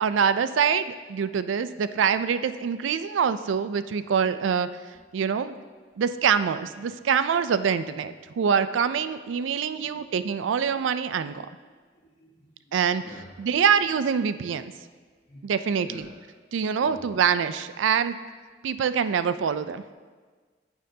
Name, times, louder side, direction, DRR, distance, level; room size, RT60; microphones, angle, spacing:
voice 1, 0.0-4.7 5.1-5.6 6.0-11.5 12.7-13.0 13.4-14.7 15.4-16.0 16.5-18.2 18.6-19.8, right 7 dB, 80° right, 13 dB, 0.4 m, -25 dB
voice 2, 9.7-10.1 11.5-11.6 11.9-13.3 15.2-15.5 15.8-16.1 16.7-17.0, equal, 55° left, -7 dB, 1.5 m, -49 dB
9.0 x 8.8 x 2.7 m, 1.5 s
head